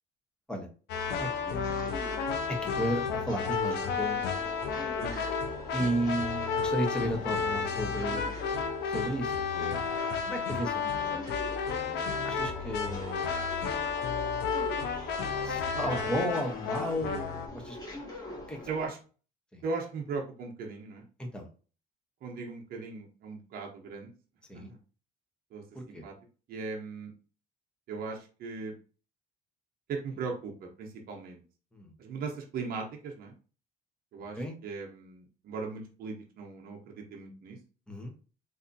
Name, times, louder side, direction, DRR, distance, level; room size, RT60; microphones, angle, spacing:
sound 1, 0.9-17.5, left 5 dB, 75° left, 0.6 m, -32 dB
sound 2, 0.9-18.9, left 2 dB, 20° left, 1.7 m, -44 dB
voice 1, 1.1-1.7 2.6-4.2 5.7-8.3 8.9-9.9 10.3-11.2 11.8-13.3 15.4-17.8 18.5-18.6 19.5-19.6 21.2-21.5 24.5-24.7 25.7-26.0 31.7-31.9 34.3-34.6 37.9-38.1, equal, 5° left, 1 dB, 0.9 m, -34 dB
voice 2, 15.9-16.2 18.7-19.0 19.6-21.0 22.2-24.1 25.5-26.1 26.5-27.1 27.9-28.7 29.9-31.4 32.0-33.3 34.1-37.6, right 4 dB, 60° right, 1 dB, 0.8 m, -38 dB
3.3 x 2.7 x 2.6 m, 0.37 s
cardioid pair, 110°, 17 cm